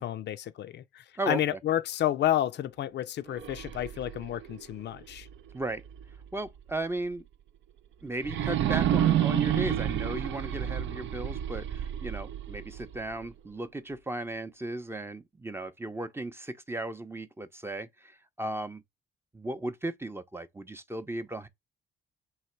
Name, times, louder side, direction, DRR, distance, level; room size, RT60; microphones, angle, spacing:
voice 1, 0.0-5.3, left 12 dB, 60° left, 0.4 m, -30 dB
voice 2, 1.2-1.6 5.5-5.8 6.3-7.2 8.0-18.8 19.3-21.5, right 2 dB, 10° right, 0.6 m, -36 dB
sound 1, 3.3-6.3 6.7-6.8 8.2-13.3, right 10 dB, 70° right, 0.6 m, -30 dB
3.1 x 3.0 x 4.4 m
cardioid pair, 90°, 20 cm